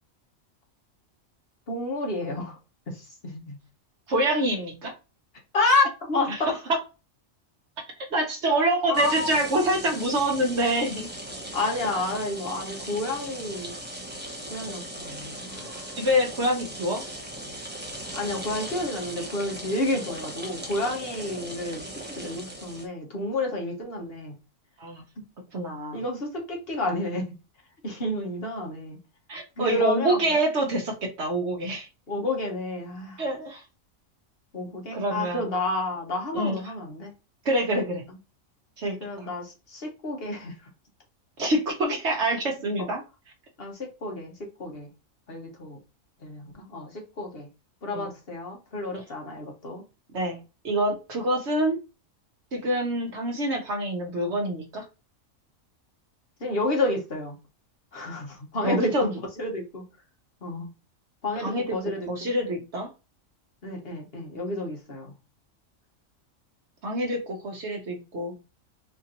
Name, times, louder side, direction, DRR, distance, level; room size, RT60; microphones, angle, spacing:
voice 1, 1.7-2.6 2.9-3.6 5.5-6.5 8.9-9.3 11.5-13.7 14.5-15.8 18.1-24.4 25.9-27.3 27.8-29.0 29.6-30.2 32.1-33.2 34.5-37.1 39.0-40.5 42.8-42.9 43.6-44.3 44.6-44.9 45.3-45.8 46.2-47.5 47.8-49.8 56.4-57.3 57.9-59.8 60.4-60.7 61.2-62.1 63.6-65.1, left 2 dB, 50° left, 1.2 m, -30 dB
voice 2, 4.1-4.9 6.3-6.8 8.1-11.1 16.0-17.0 24.8-25.0 25.5-26.0 29.3-31.9 33.2-33.6 34.9-35.5 36.3-36.6 37.4-38.0 38.8-39.0 41.4-43.0 47.9-48.1 50.1-50.4 50.6-51.8 52.5-54.8 58.6-59.1 61.4-61.8 62.1-62.9 66.8-68.3, right 1 dB, 60° right, 1.1 m, -26 dB
sound 1, 8.9-22.9, right 1 dB, 10° right, 0.6 m, -38 dB
4.3 x 2.6 x 2.8 m
omnidirectional pair, 1.4 m